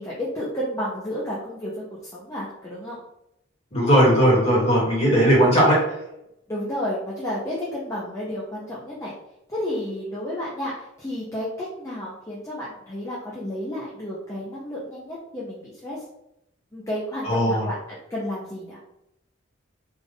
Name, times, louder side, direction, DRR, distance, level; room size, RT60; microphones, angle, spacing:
voice 1, 0.0-3.0 6.5-9.1 9.5-16.0 16.7-17.8 18.1-18.8, left 1 dB, 15° left, -6 dB, 0.6 m, -31 dB
voice 2, 3.7-5.8 17.2-17.7, equal, 30° left, -5 dB, 1.5 m, -18 dB
3.5 x 2.4 x 3.8 m, 0.83 s
head